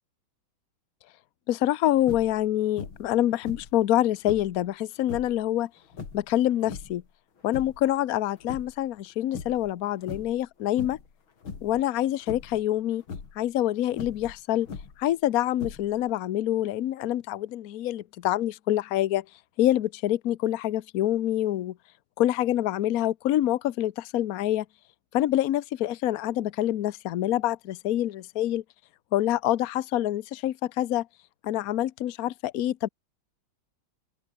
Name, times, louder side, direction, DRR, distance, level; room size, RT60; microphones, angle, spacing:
voice 1, 1.5-5.7 6.1-7.0 7.4-11.0 11.6-13.0 13.4-14.7 15.0-19.2 19.6-21.7 22.2-24.6 25.1-28.6 29.1-31.1 31.4-32.9, left 13 dB, 60° left, 1.1 m, -26 dB
sound 1, 2.0-2.4 2.8-3.1 3.4-4.6 5.0-5.4 5.9-7.0 7.4-7.9 8.3-9.1 9.3-9.7 10.0-10.4 10.8-11.1 11.4-11.8 12.3-12.6 13.0-13.4 13.9-15.1 15.5-16.1, left 5 dB, 85° left, 3.6 m, -40 dB
open air
omnidirectional pair, 2.2 m